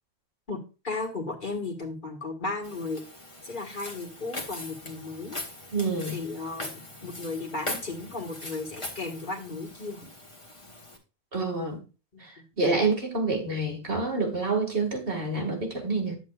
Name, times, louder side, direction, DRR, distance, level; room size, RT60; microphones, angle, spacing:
voice 1, 0.8-3.0 3.4-5.4 6.1-10.0, left 3 dB, 50° left, 1.9 m, -35 dB
Walk footsteps, 2.6-11.0, left 1 dB, 30° left, 1.5 m, -41 dB
voice 2, 5.7-6.2 11.3-11.8 12.2-16.1, right 3 dB, 60° right, 2.4 m, -28 dB
9.6 x 8.1 x 2.4 m
omnidirectional pair, 1.1 m